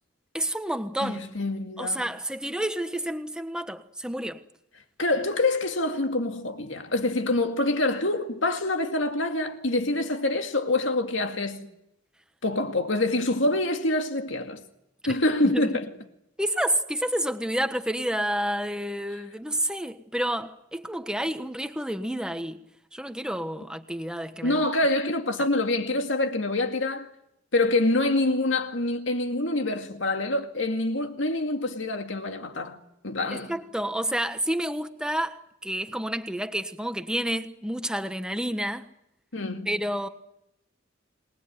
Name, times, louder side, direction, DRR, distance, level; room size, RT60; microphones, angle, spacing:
voice 1, 0.3-1.2 1.8-4.4 15.0-15.2 15.4-15.7 16.4-22.6 22.9-24.6 33.3-38.9 39.7-40.1, right 1 dB, 5° right, 1.3 m, -29 dB
voice 2, 1.0-2.0 5.0-11.7 12.4-14.6 15.1-15.9 24.4-27.1 27.5-32.8 33.0-33.5 39.3-39.7, left 2 dB, 75° left, 2.3 m, -26 dB
29.0 x 20.0 x 9.6 m
head